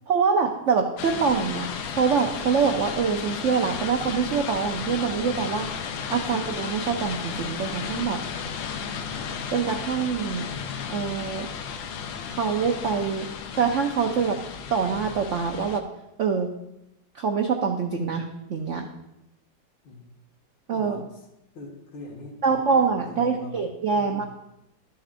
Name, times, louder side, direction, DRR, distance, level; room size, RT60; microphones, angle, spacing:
voice 1, 0.1-1.7 2.0-5.7 6.1-8.2 9.5-10.5 10.9-11.5 12.3-13.3 13.5-14.4 14.7-15.8 16.2-16.5 17.1-18.2 18.5-18.9 20.7-21.1 22.4-24.2, right 5 dB, 80° right, 3 dB, 0.6 m, -25 dB
sound 1, 1.0-15.8, left 6 dB, 85° left, 1.4 m, -34 dB
voice 2, 6.1-6.5 19.8-20.1 20.7-21.2 21.5-23.6 23.9-24.3, left 2 dB, 70° left, 0 dB, 2.3 m, -43 dB
12.5 x 7.0 x 2.5 m, 0.85 s
omnidirectional pair, 2.1 m